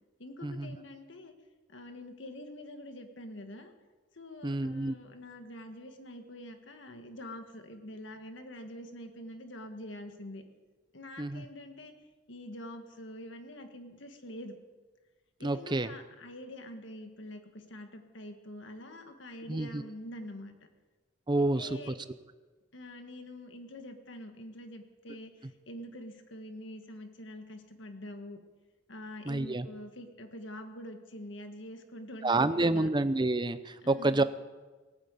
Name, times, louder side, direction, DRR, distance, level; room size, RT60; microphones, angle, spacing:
voice 1, 0.2-1.3 1.7-3.7 4.1-10.4 10.9-11.9 12.3-14.6 15.4-20.5 21.4-21.9 22.7-28.4 28.9-32.9 33.8-34.2, left 1 dB, 65° left, 6 dB, 1.7 m, -45 dB
voice 2, 4.4-5.0 11.2-11.4 15.4-15.9 19.5-19.8 21.3-21.8 29.3-29.7 32.2-34.2, right 2 dB, 20° right, 13 dB, 0.6 m, -28 dB
18.0 x 8.8 x 8.2 m, 1.3 s
head